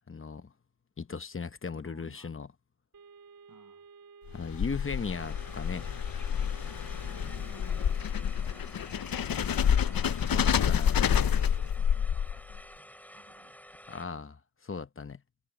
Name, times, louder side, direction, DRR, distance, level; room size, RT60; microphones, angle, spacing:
voice 1, 0.1-0.5 1.0-2.5 4.3-5.9 10.0-10.4 10.7-11.0 13.9-15.2, left 5 dB, 35° left, 0.9 m, -37 dB
voice 2, 1.7-2.3 3.5-3.9 7.0-8.1 8.4-9.3 10.1-13.6, right 4 dB, 60° right, 7.2 m, -59 dB
sound 1, 2.9-8.1, right 5 dB, 75° right, 3.5 m, -53 dB
sound 2, 4.3-12.6, left 8 dB, 80° left, 0.6 m, -28 dB
sound 3, 4.9-14.1, equal, 5° left, 6.2 m, -51 dB
wide cardioid pair, 85°, 35 cm